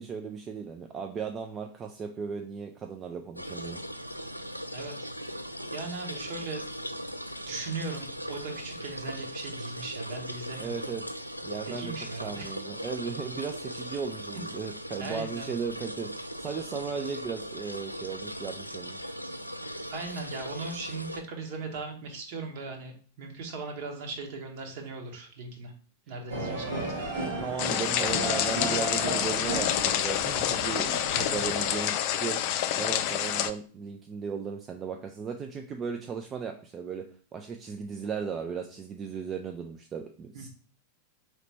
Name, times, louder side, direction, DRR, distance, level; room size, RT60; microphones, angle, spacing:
voice 1, 0.0-3.8 10.6-11.2 11.4-11.9 12.2-19.1 19.7-19.8 27.4-32.4 32.8-37.0 37.3-40.5, right 6 dB, 25° right, 4 dB, 0.4 m, -36 dB
sound 1, 3.4-21.2, equal, 90° right, 0.3 m, -39 dB
voice 2, 4.7-5.1 5.7-6.6 7.5-10.9 11.6-12.5 15.0-15.5 19.9-25.7 26.1-26.9 31.1-31.4 40.3-40.5, right 3 dB, 50° right, 3 dB, 1.1 m, -38 dB
sound 2, 26.3-31.8, right 1 dB, 65° right, 1.7 m, -34 dB
sound 3, 27.6-33.5, left 11 dB, 45° left, 0.4 m, -28 dB
4.9 x 3.1 x 3.2 m, 0.41 s
figure-of-eight pair, 90°, 0 cm